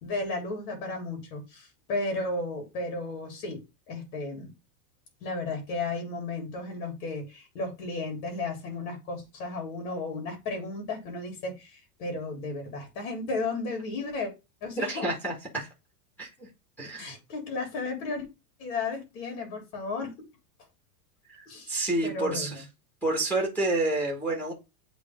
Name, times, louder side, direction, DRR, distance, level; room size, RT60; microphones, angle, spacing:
voice 1, 0.0-3.6 3.9-4.5 5.2-14.3 14.6-15.1 17.0-18.2 18.6-20.1 21.5-21.7 22.0-22.6, left 3 dB, 60° left, 3 dB, 3.6 m, -34 dB
voice 2, 14.8-15.7 16.2-16.3 16.8-17.1 21.4-22.6 23.0-24.5, right 2 dB, 5° left, -1 dB, 1.7 m, -29 dB
8.0 x 3.5 x 3.6 m, 0.26 s
supercardioid pair, 160°, 48 cm